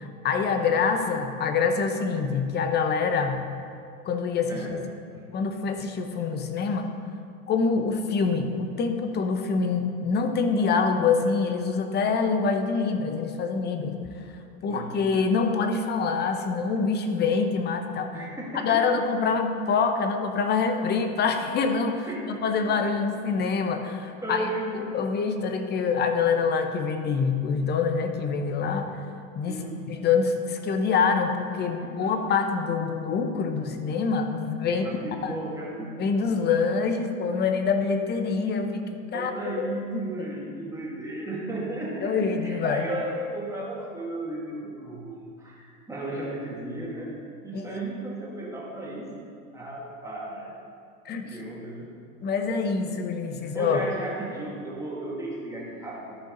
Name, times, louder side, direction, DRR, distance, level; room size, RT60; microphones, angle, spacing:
voice 1, 0.0-3.4 4.0-4.8 5.3-6.9 7.5-14.2 14.6-18.2 18.5-22.1 22.4-24.5 24.7-28.9 29.3-29.6 29.9-34.8 35.2-35.4 36.0-39.3 39.6-40.3 42.0-42.9 47.5-47.8 51.0-51.4 52.2-53.8, left 5 dB, 25° left, 6 dB, 0.7 m, -25 dB
voice 2, 18.1-18.8 22.1-22.2 24.2-25.0 29.5-29.8 31.8-32.1 34.7-35.9 39.1-47.2 47.4-50.5 51.2-51.9 52.9-53.0 53.4-56.2, right 1 dB, 5° right, -5 dB, 2.0 m, -35 dB
13.5 x 5.1 x 3.8 m, 2.4 s
supercardioid pair, 130°, 42 cm